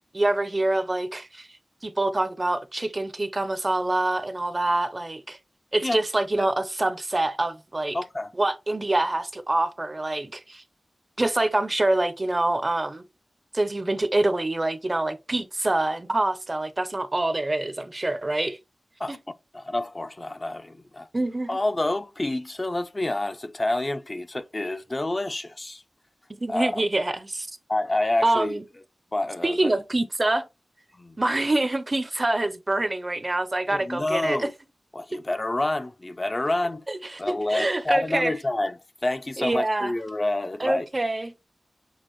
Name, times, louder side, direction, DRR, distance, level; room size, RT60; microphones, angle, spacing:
voice 1, 0.1-1.5 1.8-5.4 5.7-8.0 8.4-10.6 11.2-13.0 13.5-18.6 19.1-19.2 21.1-21.5 26.4-27.5 28.2-28.6 29.4-30.5 31.2-34.5 36.9-37.2 37.5-38.3 39.4-39.9 40.6-41.3, right 2 dB, 35° right, 0.5 m, -25 dB
voice 2, 7.9-8.3 19.0-19.2 19.5-21.1 21.5-25.8 26.5-26.8 27.7-28.6 29.1-29.7 30.9-31.2 33.7-34.5 34.9-36.8 37.2-40.9, left 2 dB, 35° left, 0.4 m, -28 dB
6.4 x 2.5 x 2.9 m
wide cardioid pair, 65°, 0 cm